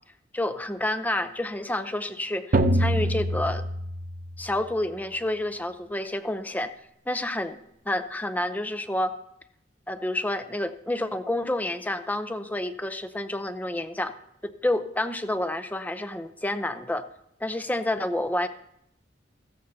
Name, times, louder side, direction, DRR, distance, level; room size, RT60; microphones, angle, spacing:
voice 1, 0.3-3.6 4.4-6.7 7.1-7.6 7.9-9.1 9.9-14.1 14.4-17.1 17.4-18.5, left 1 dB, 10° left, 9 dB, 0.6 m, -29 dB
sound 1, 2.5-4.5, right 1 dB, 50° right, 0.7 m, -25 dB
15.0 x 14.5 x 2.8 m, 0.77 s
head